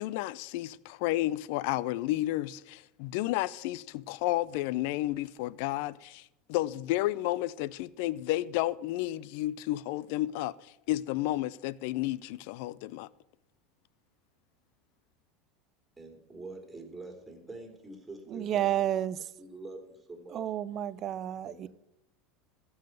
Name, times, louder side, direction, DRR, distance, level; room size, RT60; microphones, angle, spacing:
voice 1, 0.0-13.1, left 16 dB, 65° left, 0.4 m, -32 dB
voice 2, 16.0-18.7 19.4-20.4 21.4-21.7, right 2 dB, 10° right, 3.4 m, -45 dB
voice 3, 18.3-19.2 20.3-21.7, right 11 dB, 45° right, 0.5 m, -30 dB
14.0 x 5.6 x 9.0 m
hypercardioid pair, 85°, 0 cm